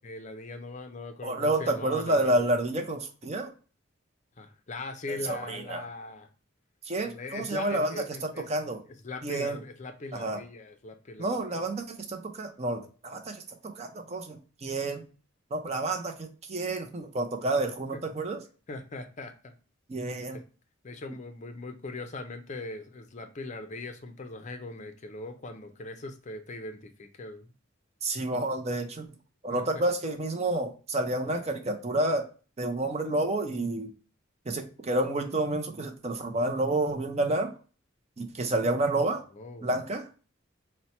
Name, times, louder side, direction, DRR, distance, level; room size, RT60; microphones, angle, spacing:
voice 1, 0.0-2.5 4.4-6.3 7.0-8.5 9.0-11.5 18.7-19.5 20.3-20.4 20.8-27.5 29.5-29.6 31.2-31.5 39.3-39.7, left 2 dB, 35° left, 6 dB, 0.5 m, -40 dB
voice 2, 1.2-3.5 5.1-5.8 6.8-7.9 8.2-8.8 9.2-9.6 10.1-10.4 11.2-15.0 15.5-18.4 19.9-20.4 28.0-29.1 29.4-32.3 32.6-33.9 34.5-37.5 38.2-39.2 39.6-40.1, right 2 dB, 30° right, 6 dB, 0.5 m, -29 dB
4.2 x 2.1 x 4.2 m, 0.36 s
head